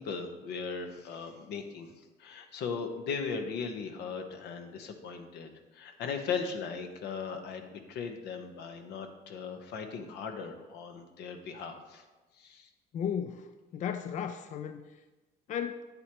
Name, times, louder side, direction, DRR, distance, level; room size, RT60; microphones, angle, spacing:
voice 1, 0.0-1.9 2.2-12.0 12.4-12.7, left 5 dB, 85° left, 5 dB, 1.0 m, -38 dB
voice 2, 12.9-13.5 13.7-14.8 15.5-15.9, left 8 dB, 45° left, 9 dB, 0.4 m, -34 dB
9.3 x 8.0 x 3.0 m, 1.2 s
cardioid pair, 110°, 17 cm